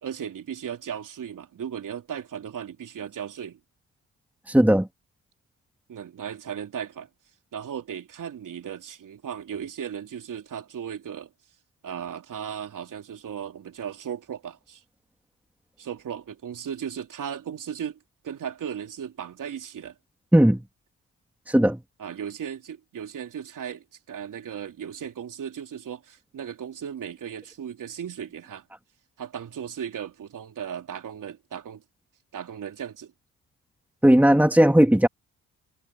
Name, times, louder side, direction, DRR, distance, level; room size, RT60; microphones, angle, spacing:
voice 1, 0.0-3.6 5.9-7.1 7.5-11.3 11.8-14.8 15.8-18.0 18.2-20.0 22.0-28.7 29.2-31.8 32.3-33.1, right 8 dB, 65° right, 3.4 m, -36 dB
voice 2, 4.5-4.9 20.3-20.6 21.5-21.8 34.0-35.1, right 1 dB, 5° right, 2.8 m, -17 dB
supercardioid pair, 50°, 34 cm